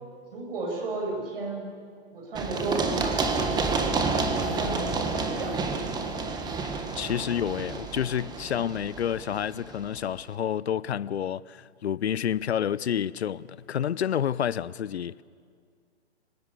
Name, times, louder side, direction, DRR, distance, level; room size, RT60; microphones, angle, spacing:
voice 1, 0.3-1.7 2.1-3.8 4.1-5.9, right 3 dB, 55° right, 7.6 m, -34 dB
Run, 2.4-10.0, right 4 dB, 10° right, 1.7 m, -29 dB
voice 2, 7.0-15.2, left 9 dB, 70° left, 0.7 m, -29 dB
26.5 x 17.5 x 8.3 m
figure-of-eight pair, 130°, 33 cm